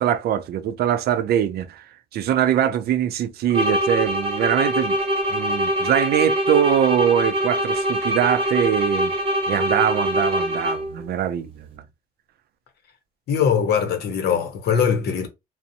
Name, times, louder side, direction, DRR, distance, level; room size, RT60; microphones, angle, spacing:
voice 1, 0.0-1.9 2.1-5.0 5.3-9.1 9.5-11.8, right 10 dB, 75° right, 0.4 m, -22 dB
sound 1, 3.5-11.0, equal, 35° right, 0.8 m, -23 dB
voice 2, 13.3-15.3, left 7 dB, 90° left, 0.7 m, -21 dB
2.6 x 2.0 x 2.6 m
cardioid pair, 115°, 16 cm